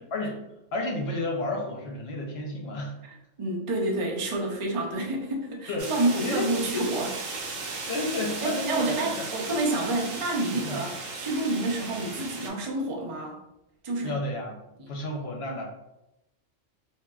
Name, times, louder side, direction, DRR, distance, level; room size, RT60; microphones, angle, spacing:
voice 1, 0.7-2.9 5.7-5.9 6.2-6.5 7.9-9.3 10.6-10.8 14.0-15.6, left 2 dB, 60° left, 0 dB, 0.8 m, -31 dB
voice 2, 3.0-7.2 8.4-13.4 13.8-14.2 14.8-14.9, right 2 dB, 40° right, -1 dB, 0.4 m, -29 dB
sound 1, 5.8-12.5, right 3 dB, 90° right, 1.1 m, -36 dB
3.5 x 2.5 x 2.3 m, 0.90 s
omnidirectional pair, 1.3 m